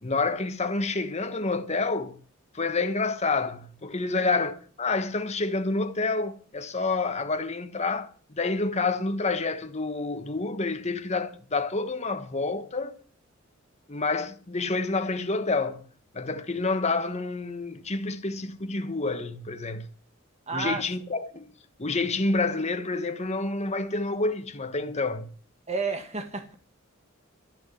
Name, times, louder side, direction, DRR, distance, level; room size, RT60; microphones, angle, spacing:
voice 1, 0.0-2.2 2.5-13.0 13.9-15.8 16.1-19.9 20.5-21.5 21.8-25.3, left 3 dB, 30° left, 1.3 m, -28 dB
voice 2, 20.5-20.8 25.7-26.5, right 4 dB, 30° right, 1.8 m, -31 dB
14.0 x 6.2 x 9.5 m
head